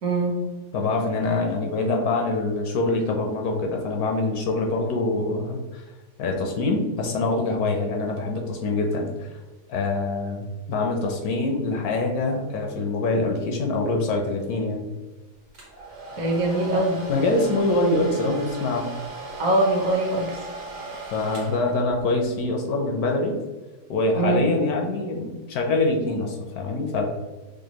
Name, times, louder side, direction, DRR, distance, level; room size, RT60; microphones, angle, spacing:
voice 1, 0.0-0.3 16.2-17.0 19.4-20.4 24.1-24.4, right 2 dB, 60° right, -1 dB, 1.1 m, -22 dB
voice 2, 0.7-5.8 6.2-9.3 9.7-14.9 17.1-18.9 21.1-23.4 23.9-27.0, left 2 dB, 70° left, 1 dB, 1.0 m, -24 dB
Domestic sounds home sounds, 15.5-22.2, right 3 dB, 85° right, 1.6 m, -38 dB
5.2 x 2.2 x 2.8 m, 1.2 s
omnidirectional pair, 1.8 m